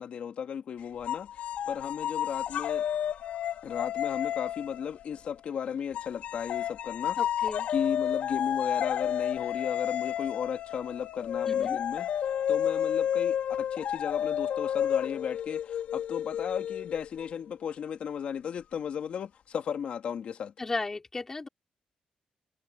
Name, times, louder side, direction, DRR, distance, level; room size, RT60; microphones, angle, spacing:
voice 1, 0.0-2.9 3.6-7.2 7.7-12.1 12.5-20.5, left 8 dB, 55° left, 2.8 m, -35 dB
sound 1, 1.1-5.4 5.9-17.3, left 10 dB, 85° left, 3.7 m, -31 dB
voice 2, 7.2-7.7 11.5-11.8 20.6-21.5, left 3 dB, 20° left, 4.6 m, -35 dB
wide cardioid pair, 175°, 2 cm